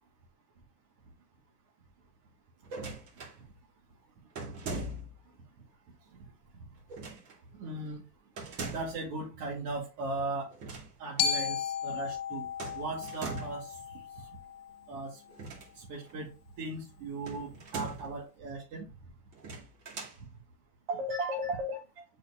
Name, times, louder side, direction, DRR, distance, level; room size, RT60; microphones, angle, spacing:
sound 1, 2.6-3.4 4.3-5.3 6.9-7.4 8.4-9.0 10.5-10.9 11.2-11.3 12.6-13.7 15.3-16.1 17.2-18.2 19.3-20.2, right 3 dB, 35° right, 2.4 m, -41 dB
voice 1, 7.6-8.0 8.6-10.5 11.0-12.5 12.7-14.3 14.9-15.2 15.7-16.3 16.6-18.8 20.9-22.0, right 2 dB, 50° right, -4 dB, 2.2 m, -37 dB
Glockenspiel, 11.2-15.3, left 7 dB, 35° left, 0.7 m, -35 dB
7.7 x 4.7 x 2.9 m, 0.29 s
hypercardioid pair, 125°, 48 cm